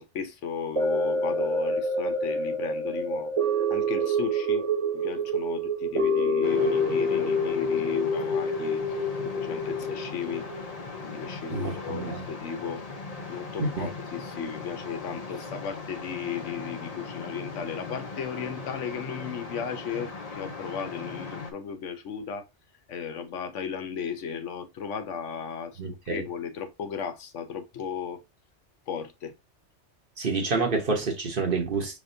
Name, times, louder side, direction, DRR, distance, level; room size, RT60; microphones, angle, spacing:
voice 1, 0.0-3.3 3.7-4.7 4.9-8.8 9.4-10.5 11.0-12.8 13.3-22.5 22.9-25.8 26.1-28.2 28.9-29.3, left 7 dB, 90° left, 1.1 m, -35 dB
sound 1, 0.8-11.1 11.6-11.7, equal, 30° right, 1.2 m, -27 dB
sound 2, 6.4-21.5, left 4 dB, 40° left, 0.8 m, -39 dB
voice 2, 11.5-12.3 13.6-13.9 25.8-26.2 30.2-32.0, right 4 dB, 50° right, 1.2 m, -28 dB
5.1 x 3.4 x 2.6 m
omnidirectional pair, 1.2 m